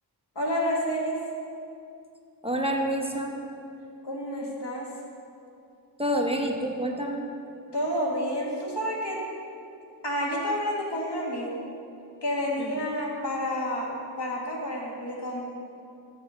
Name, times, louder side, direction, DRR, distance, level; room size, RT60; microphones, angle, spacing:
voice 1, 0.4-1.2 4.0-4.9 7.7-9.2 10.0-11.6 12.2-13.9 14.2-15.4, equal, 75° left, -2 dB, 1.7 m, -29 dB
voice 2, 2.4-3.4 6.0-7.3 12.6-12.7, right 1 dB, 15° right, 1 dB, 0.8 m, -28 dB
6.8 x 6.4 x 6.7 m, 2.6 s
wide cardioid pair, 65°, 41 cm